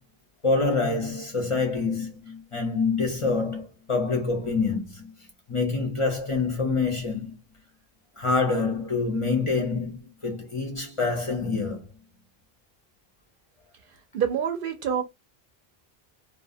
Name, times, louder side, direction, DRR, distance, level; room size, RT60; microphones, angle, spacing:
voice 1, 0.4-5.1 5.5-7.3 8.2-11.8, left 4 dB, 35° left, 0.6 m, -26 dB
voice 2, 14.1-15.0, right 8 dB, 65° right, 0.7 m, -26 dB
2.3 x 2.1 x 2.6 m
omnidirectional pair, 1.0 m